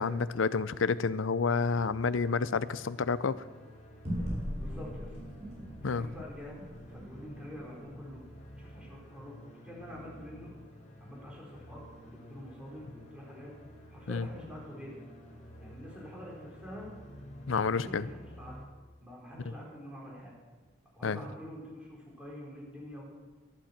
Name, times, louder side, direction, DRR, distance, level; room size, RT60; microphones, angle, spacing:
voice 1, 0.0-3.5 5.8-6.1 14.1-14.3 17.5-18.1 21.0-21.2, left 5 dB, 80° left, 16 dB, 0.6 m, -29 dB
sound 1, 1.7-18.7, equal, 40° left, 2.1 m, -51 dB
sound 2, 4.0-8.9, equal, 35° right, 5.0 m, -40 dB
voice 2, 4.6-5.2 5.8-6.6 6.9-8.3 8.6-10.6 11.0-13.5 13.9-15.0 15.6-16.9 17.6-18.6 19.0-20.4 20.9-23.0, equal, 5° right, -4 dB, 4.6 m, -46 dB
11.5 x 11.5 x 7.4 m, 1.3 s
head